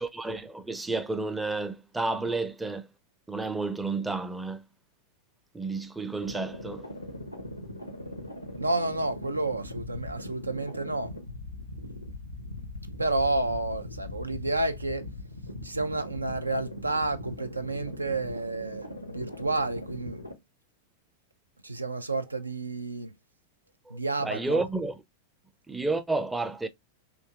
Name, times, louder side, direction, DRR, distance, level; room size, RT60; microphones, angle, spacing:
voice 1, 0.0-2.9 3.3-4.6 5.5-6.9 24.2-24.9 25.7-26.7, right 3 dB, 5° right, 0.4 m, -31 dB
sound 1, 6.2-20.3, left 1 dB, 90° left, 0.7 m, -40 dB
voice 2, 8.6-11.1 13.0-15.1 15.6-20.2 21.6-23.2 23.9-24.6, right 2 dB, 80° right, 0.3 m, -30 dB
3.4 x 2.7 x 2.4 m
figure-of-eight pair, 90°, 0 cm